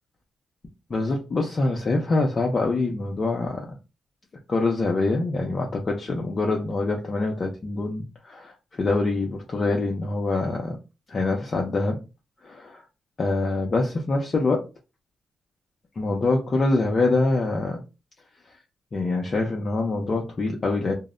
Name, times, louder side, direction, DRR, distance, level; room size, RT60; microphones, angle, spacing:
voice 1, 0.9-3.7 4.5-10.8 11.1-12.0 12.4-12.8 13.2-14.7 16.0-17.8 18.9-20.9, left 3 dB, 35° left, 0.5 m, -25 dB
2.0 x 2.0 x 3.6 m
cardioid pair, 125°, 0 cm